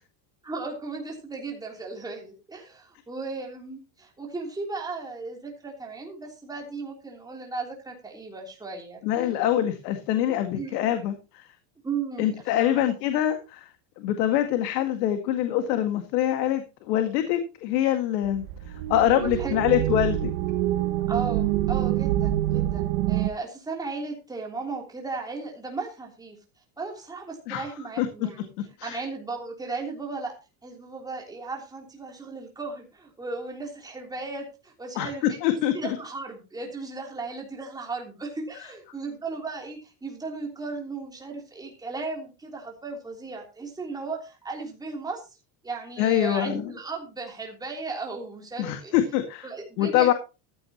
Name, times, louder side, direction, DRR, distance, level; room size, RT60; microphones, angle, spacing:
voice 1, 0.4-9.0 10.5-10.9 11.8-12.9 19.1-19.8 21.1-26.4 26.8-28.5 28.8-30.3 30.6-45.2 45.6-48.9 49.4-50.1, right 4 dB, 5° right, 0 dB, 3.3 m, -36 dB
voice 2, 9.0-11.4 12.2-13.6 14.0-18.5 18.9-20.3 27.5-27.7 28.0-28.1 28.8-29.0 35.0-35.1 35.4-36.0 46.0-46.7 48.6-49.5 49.8-50.1, left 11 dB, 70° left, 7 dB, 2.1 m, -24 dB
sound 1, 18.2-23.3, right 13 dB, 45° right, 1.0 m, -26 dB
14.5 x 12.0 x 3.0 m, 0.30 s
cardioid pair, 175°, 50 cm